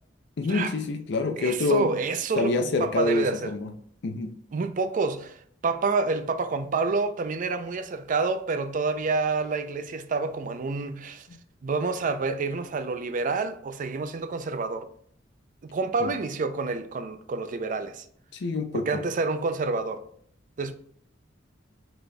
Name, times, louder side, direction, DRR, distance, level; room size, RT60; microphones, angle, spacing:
voice 1, 0.4-1.9 2.4-3.7 4.0-4.3 16.0-16.1 18.3-19.0, left 3 dB, 65° left, 0.5 m, -27 dB
voice 2, 1.4-3.5 4.5-5.4 5.6-11.3 11.6-14.9 15.6-18.0 18.7-20.0 20.6-20.7, right 4 dB, 45° right, 0.4 m, -28 dB
5.0 x 4.0 x 2.2 m
head